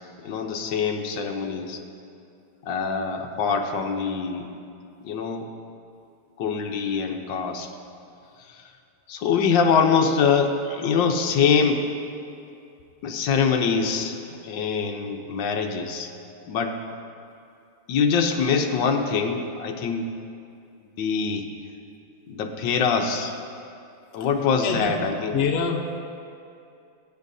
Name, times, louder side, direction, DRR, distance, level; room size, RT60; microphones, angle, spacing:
voice 1, 0.2-1.8 2.6-4.5 5.0-5.5 6.4-7.7 8.5-8.6 9.1-11.8 13.0-14.2 14.4-16.1 16.5-16.8 17.9-20.0 21.0-21.5 22.3-23.3 24.1-25.3, left 5 dB, 65° left, 4 dB, 1.4 m, -24 dB
voice 2, 25.3-25.8, left 6 dB, 85° left, 2 dB, 0.5 m, -24 dB
21.0 x 9.2 x 2.7 m, 2.6 s
omnidirectional pair, 2.3 m